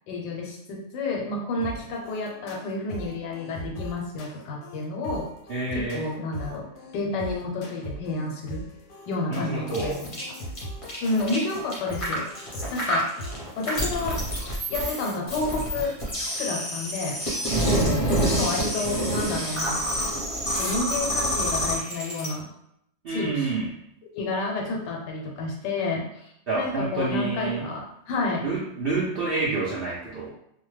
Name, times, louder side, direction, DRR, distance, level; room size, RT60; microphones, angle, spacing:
voice 1, 0.1-5.3 5.7-6.7 6.9-8.6 9.1-10.1 11.0-13.1 13.6-14.2 14.7-15.9 16.4-17.2 18.2-19.8 20.6-22.5 23.1-23.5 24.1-28.5, left 3 dB, 90° left, -1 dB, 1.3 m, -30 dB
sound 1, 1.6-14.6, equal, 70° left, 0.9 m, -40 dB
voice 2, 5.5-6.1 9.3-10.0 17.5-17.8 23.0-23.7 26.5-27.6 28.4-30.3, right 3 dB, 75° right, -7 dB, 0.5 m, -28 dB
sound 2, 9.7-22.3, equal, 30° left, 0.6 m, -27 dB
2.8 x 2.1 x 3.1 m, 0.75 s
omnidirectional pair, 1.8 m